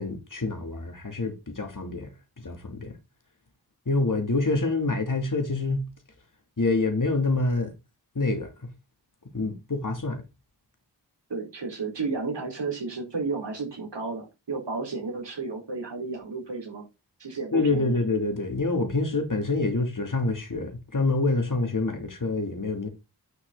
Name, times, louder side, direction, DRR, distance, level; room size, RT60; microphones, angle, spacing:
voice 1, 0.0-2.1 2.4-3.0 3.9-5.8 6.6-7.7 8.1-8.5 9.3-10.2 17.5-22.9, left 3 dB, 45° left, 2.9 m, -26 dB
voice 2, 11.3-16.9 17.2-18.0, right 4 dB, 80° right, 4.6 m, -32 dB
9.6 x 6.4 x 4.0 m
cardioid pair, 45°, 42 cm